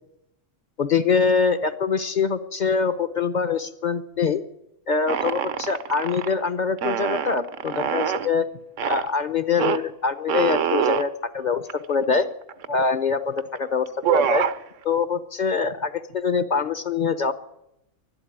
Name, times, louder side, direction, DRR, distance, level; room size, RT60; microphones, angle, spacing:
voice 1, 0.8-4.4 4.9-8.5 8.8-12.3 12.7-14.4 14.8-17.3, left 5 dB, 45° left, 12 dB, 0.8 m, -24 dB
sound 1, 5.1-6.3 6.8-8.3 8.8-9.1 9.6-9.8 10.3-11.1 11.7-11.8 12.0-12.8 13.4-13.6 13.9-14.6, right 9 dB, 85° right, 1.1 m, -25 dB
12.0 x 12.0 x 10.0 m, 0.83 s
omnidirectional pair, 1.3 m